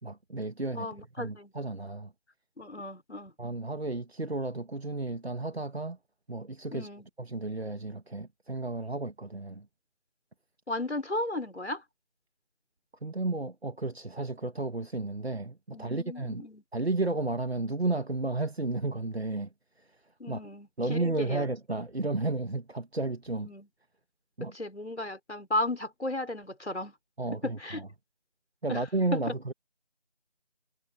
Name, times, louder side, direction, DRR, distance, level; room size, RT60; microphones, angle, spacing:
voice 1, 0.0-0.9 1.2-2.1 3.4-6.0 6.3-6.9 7.2-9.7 13.0-16.5 16.7-19.5 19.8-19.9 20.3-20.4 20.8-23.5 24.4-24.5 27.2-27.9 28.6-29.5, right 2 dB, 70° right, 2.0 m, -32 dB
voice 2, 0.7-1.5 2.6-3.3 6.7-7.0 10.7-11.8 15.7-16.6 20.2-21.5 23.4-23.7 24.4-26.9 27.4-27.8 28.7-28.8 29.1-29.3, left 1 dB, 85° left, 5.9 m, -35 dB
figure-of-eight pair, 180°, 33 cm